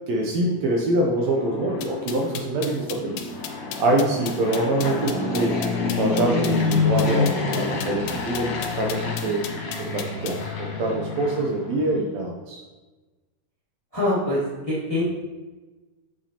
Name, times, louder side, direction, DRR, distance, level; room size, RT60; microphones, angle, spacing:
voice 1, 0.1-3.2 3.8-5.6 6.0-9.4 9.8-12.6, right 2 dB, 70° right, -1 dB, 1.7 m, -25 dB
Fixed-wing aircraft airplane, 1.0-12.1, left 4 dB, 65° left, 2.1 m, -28 dB
sound 1, 1.8-10.4, left 10 dB, 80° left, 2.0 m, -36 dB
voice 2, 13.9-15.1, left 1 dB, 20° left, -8 dB, 1.1 m, -24 dB
6.7 x 6.3 x 2.9 m, 1.2 s
omnidirectional pair, 3.5 m